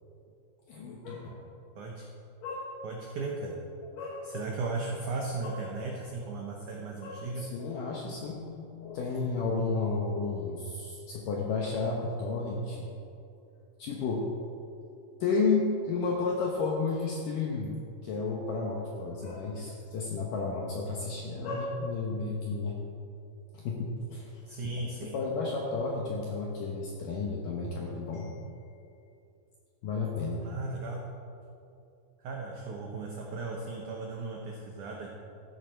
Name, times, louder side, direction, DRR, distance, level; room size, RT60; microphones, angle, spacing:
voice 1, 0.7-1.4 2.4-2.8 3.8-4.3 5.4-5.6 7.0-12.9 13.8-14.3 15.2-22.8 23.5-24.4 25.0-28.8 29.8-30.5, left 4 dB, 75° left, -1 dB, 2.0 m, -32 dB
voice 2, 2.8-3.6 4.2-7.4 24.4-25.1 30.4-31.0 32.2-35.1, right 3 dB, 85° right, -1 dB, 1.7 m, -36 dB
14.0 x 10.0 x 4.4 m, 2.7 s
omnidirectional pair, 5.2 m